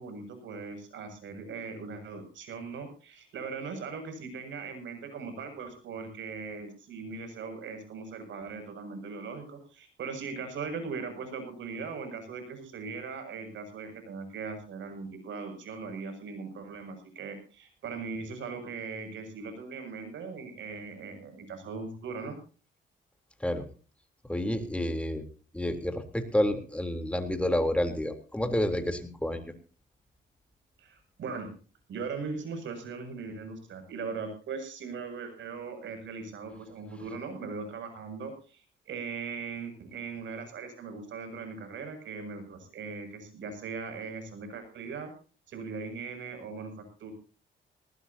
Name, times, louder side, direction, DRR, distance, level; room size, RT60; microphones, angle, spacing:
voice 1, 0.0-22.4 30.8-31.5 31.9-45.1 45.5-47.1, right 4 dB, 70° right, 6 dB, 7.3 m, -39 dB
voice 2, 24.3-25.2 25.5-29.4, left 1 dB, 5° left, 6 dB, 3.6 m, -29 dB
19.5 x 19.0 x 2.9 m, 0.37 s
cardioid pair, 90°, 20 cm